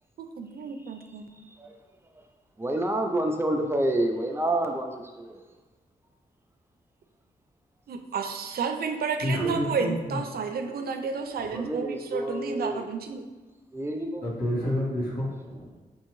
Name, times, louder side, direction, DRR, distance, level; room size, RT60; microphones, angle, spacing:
voice 1, 0.2-1.3 7.9-13.2, right 5 dB, 80° right, 5 dB, 0.4 m, -31 dB
voice 2, 2.6-5.5 11.4-12.8 13.7-14.2, right 1 dB, 15° right, 2 dB, 0.4 m, -28 dB
voice 3, 9.2-10.2 14.2-15.8, left 1 dB, 85° left, -6 dB, 1.4 m, -29 dB
5.5 x 2.7 x 3.0 m, 1.2 s
wide cardioid pair, 105°, 16 cm